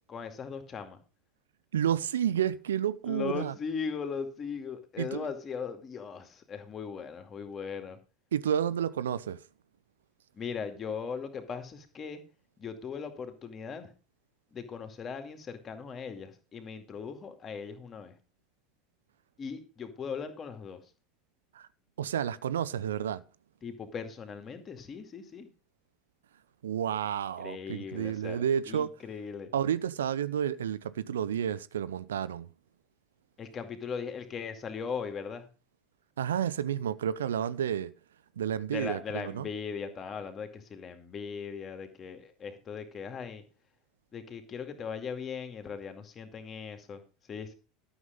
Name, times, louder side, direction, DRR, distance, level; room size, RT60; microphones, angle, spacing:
voice 1, 0.1-1.0 3.0-8.0 10.3-12.2 12.6-13.9 14.5-18.1 19.4-20.8 23.6-25.5 27.4-29.5 33.4-35.5 38.7-43.4 44.1-47.0 47.3-47.5, left 6 dB, 30° left, 2.3 m, -39 dB
voice 2, 1.7-3.5 5.0-5.2 8.3-9.4 21.5-21.7 22.0-23.2 26.6-28.9 29.5-32.5 36.2-37.9 38.4-39.5, right 9 dB, 70° right, 0.5 m, -30 dB
12.5 x 7.1 x 5.2 m
figure-of-eight pair, 75°, 0 cm